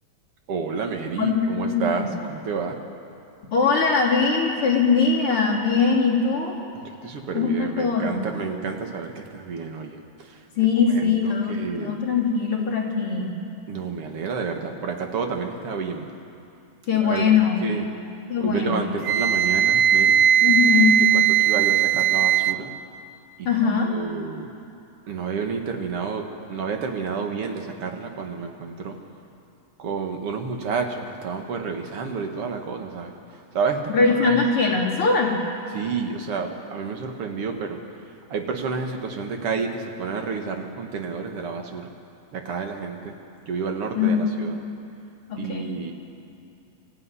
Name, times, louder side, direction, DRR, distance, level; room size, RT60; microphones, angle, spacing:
voice 1, 0.5-2.8 6.7-10.4 11.0-11.9 13.7-16.1 17.0-17.4 17.6-17.8 18.4-20.2 21.1-22.7 23.4-23.5 23.8-24.5 25.1-29.0 29.8-33.1 33.5-34.4 35.7-37.8 38.3-41.9 42.3-43.1 43.5-44.6 45.4-45.9, right 5 dB, 55° right, 4 dB, 2.4 m, -30 dB
voice 2, 1.2-2.0 3.5-6.5 7.3-8.3 10.6-13.3 16.9-17.7 18.3-18.9 20.4-21.0 23.4-23.9 33.9-35.4 44.0-44.3 45.3-45.7, left 5 dB, 45° left, -2 dB, 3.8 m, -21 dB
Wind instrument woodwind instrument, 19.0-22.6, right 9 dB, 80° right, 1.3 m, -18 dB
25.0 x 14.5 x 9.7 m, 2.6 s
omnidirectional pair, 3.3 m